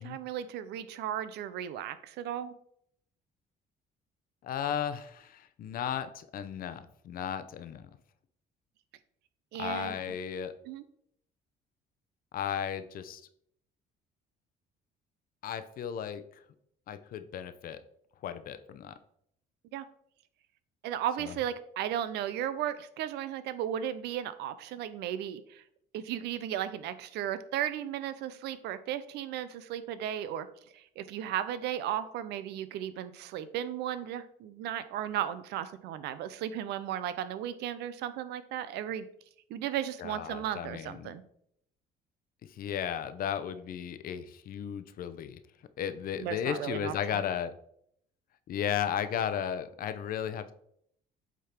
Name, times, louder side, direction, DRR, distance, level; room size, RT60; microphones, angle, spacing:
voice 1, 0.0-2.5 9.5-10.0 10.6-10.8 19.7-19.9 20.8-25.6 25.9-30.5 30.7-39.1 39.5-41.2 46.2-47.2, right 10 dB, 85° right, 13 dB, 0.6 m, -35 dB
voice 2, 4.4-7.9 9.6-10.5 12.3-13.2 15.4-16.4 16.9-17.8 18.2-18.9 21.2-21.3 40.0-41.1 42.5-45.4 45.8-47.5 48.5-50.5, left 9 dB, 60° left, 12 dB, 0.7 m, -35 dB
8.3 x 3.7 x 4.4 m, 0.69 s
cardioid pair, 110°, 17 cm